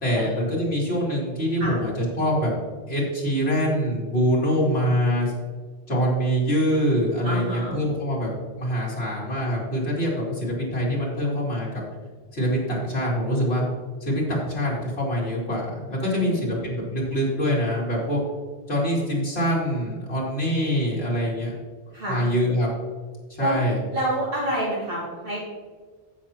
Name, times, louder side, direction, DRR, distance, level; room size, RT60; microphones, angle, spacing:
voice 1, 0.0-2.5 2.9-5.3 5.9-8.3 8.6-11.8 12.3-13.6 14.0-18.2 18.7-21.5 22.1-22.7 23.3-23.8, equal, 75° left, -5 dB, 3.2 m, -24 dB
voice 2, 7.2-7.8 16.0-16.6 21.9-22.2 23.4-23.6 23.9-25.4, right 1 dB, 60° right, -8 dB, 2.7 m, -28 dB
15.0 x 5.8 x 3.0 m, 1.5 s
omnidirectional pair, 1.1 m